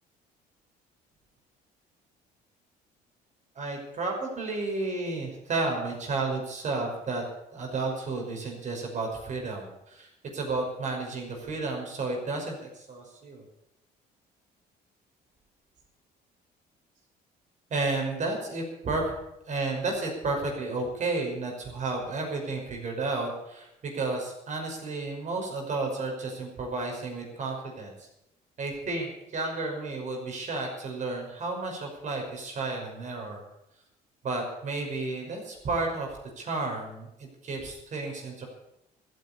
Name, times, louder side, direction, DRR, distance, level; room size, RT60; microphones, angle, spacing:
voice 1, 3.6-7.2 7.5-13.4 17.7-19.1 19.5-28.1 28.6-33.4 34.2-38.5, right 3 dB, 45° right, 1 dB, 5.7 m, -32 dB
14.5 x 9.5 x 8.7 m, 0.83 s
cardioid pair, 110°, 17 cm